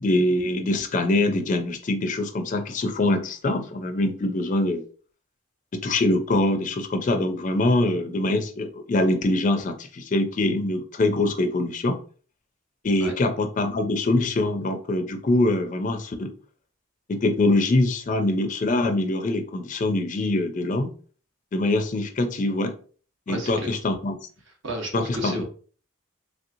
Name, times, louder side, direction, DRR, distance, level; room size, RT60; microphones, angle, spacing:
voice 1, 0.0-4.8 5.7-12.0 12.8-16.3 17.1-20.9 21.5-22.7 23.3-24.1 24.9-25.4, left 2 dB, 35° left, 6 dB, 0.4 m, -24 dB
voice 2, 23.3-23.7 24.6-25.4, right 1 dB, 65° right, 2 dB, 0.9 m, -31 dB
3.2 x 2.8 x 2.6 m, 0.42 s
head